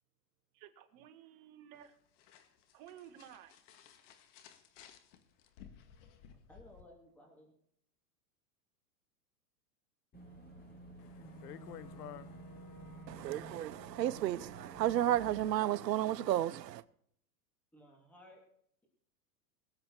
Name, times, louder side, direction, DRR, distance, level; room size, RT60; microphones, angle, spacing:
voice 1, 0.5-2.0 2.7-3.8, right 10 dB, 40° right, 1.6 m, -55 dB
sound 1, 1.7-6.8, left 8 dB, 50° left, 2.0 m, -58 dB
voice 2, 6.5-7.5 17.7-18.4, left 1 dB, 5° left, 3.0 m, -58 dB
Boat Water vehicle / Engine, 10.1-15.4, right 2 dB, 20° left, 5.4 m, -52 dB
voice 3, 11.0-13.1, left 12 dB, 70° left, 1.2 m, -51 dB
voice 4, 13.1-16.8, right 12 dB, 90° right, 0.9 m, -32 dB
22.5 x 7.8 x 4.4 m
hypercardioid pair, 140°, 49 cm